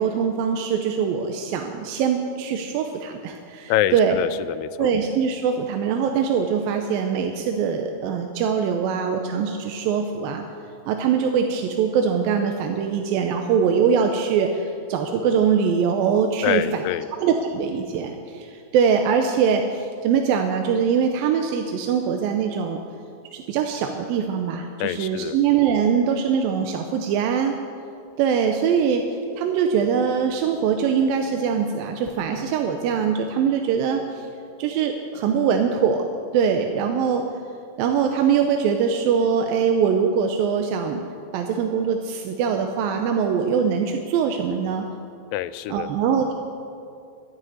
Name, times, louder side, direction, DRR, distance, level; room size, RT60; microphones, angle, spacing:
voice 1, 0.0-4.2 4.8-10.5 10.9-16.8 17.2-22.8 23.3-27.6 28.2-29.1 29.4-34.3 34.6-36.1 36.3-37.3 37.8-41.0 41.3-44.9 45.7-46.3, right 7 dB, 90° right, 4 dB, 2.5 m, -22 dB
voice 2, 3.7-4.9 16.4-17.1 24.8-25.4 45.3-45.9, left 13 dB, 85° left, 14 dB, 2.2 m, -25 dB
12.5 x 9.0 x 9.3 m, 2.5 s
omnidirectional pair, 4.1 m